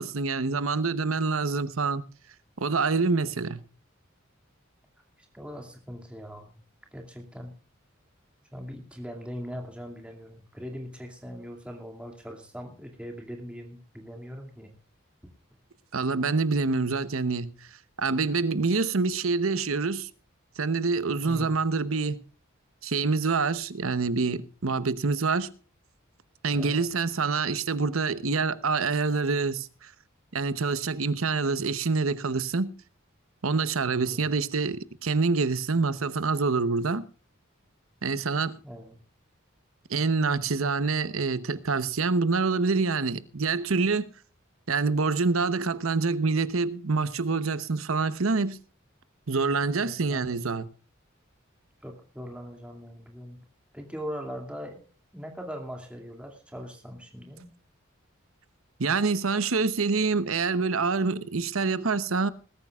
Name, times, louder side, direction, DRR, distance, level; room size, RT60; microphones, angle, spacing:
voice 1, 0.0-2.0 2.6-3.6 15.9-17.5 18.0-20.1 20.6-22.2 22.8-25.5 26.4-29.9 30.3-32.7 33.4-37.0 38.0-38.6 39.9-44.1 44.7-48.6 49.3-50.7 58.8-62.3, right 4 dB, 90° right, 0.9 m, -26 dB
voice 2, 5.3-6.6 6.9-7.5 8.5-14.7 21.2-21.6 26.5-26.9 34.0-34.3 38.6-39.0 49.8-50.4 51.8-53.4 53.7-54.8 55.1-57.5, equal, 5° right, 2.5 m, -40 dB
20.5 x 13.5 x 2.4 m
head